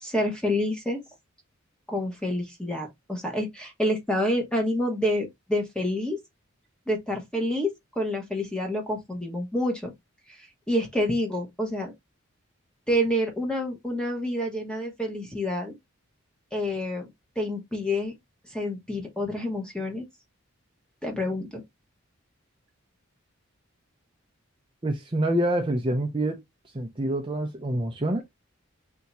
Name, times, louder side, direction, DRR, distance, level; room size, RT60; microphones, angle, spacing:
voice 1, 0.0-1.0 1.9-6.2 6.9-7.7 7.9-9.9 10.7-11.9 12.9-15.7 16.5-17.1 17.4-18.1 18.5-20.0 21.0-21.6, left 1 dB, 5° left, 1.1 m, -28 dB
voice 2, 24.8-26.4 26.7-28.2, right 1 dB, 25° right, 0.5 m, -26 dB
3.5 x 2.7 x 4.1 m
head